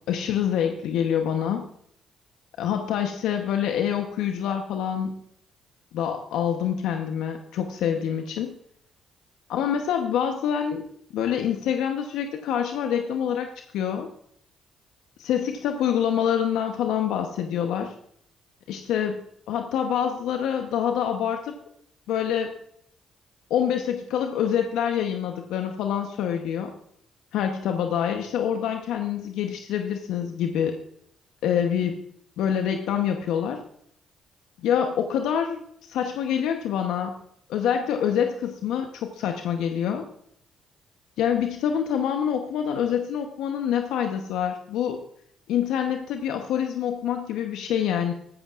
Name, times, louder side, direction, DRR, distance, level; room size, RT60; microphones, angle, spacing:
voice 1, 0.1-1.7 2.6-5.2 5.9-8.5 9.5-10.8 11.1-14.1 15.2-17.9 18.7-19.2 19.5-21.5 22.1-22.5 23.5-26.7 27.3-30.7 31.4-32.0 32.4-33.6 34.6-37.2 37.5-40.1 41.2-45.0 45.5-48.1, left 9 dB, 75° left, 5 dB, 1.0 m, -26 dB
14.0 x 13.5 x 2.5 m, 0.69 s
hypercardioid pair, 50°, 0 cm